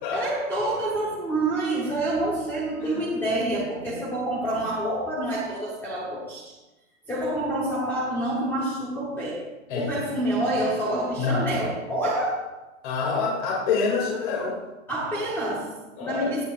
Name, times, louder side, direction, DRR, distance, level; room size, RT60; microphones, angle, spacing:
voice 1, 0.1-6.5 7.1-12.5 14.9-16.4, right 1 dB, 5° left, -6 dB, 1.1 m, -27 dB
voice 2, 11.2-11.5 12.8-14.6 16.0-16.4, left 4 dB, 35° left, -3 dB, 2.7 m, -26 dB
16.5 x 8.9 x 2.5 m, 1.1 s
hypercardioid pair, 160°, 41 cm